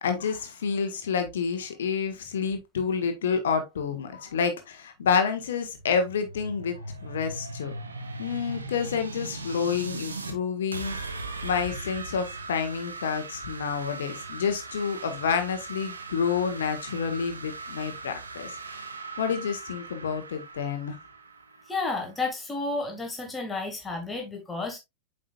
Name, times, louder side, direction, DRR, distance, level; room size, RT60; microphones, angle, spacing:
voice 1, 0.0-7.7 8.2-18.9 19.2-21.0, left 6 dB, 60° left, 1.3 m, -29 dB
sound 1, 5.7-10.3 10.7-22.3, right 3 dB, 75° right, 1.3 m, -39 dB
voice 2, 21.7-24.8, left 3 dB, 15° left, 2.0 m, -31 dB
8.8 x 5.1 x 2.4 m
figure-of-eight pair, 90°, 0 cm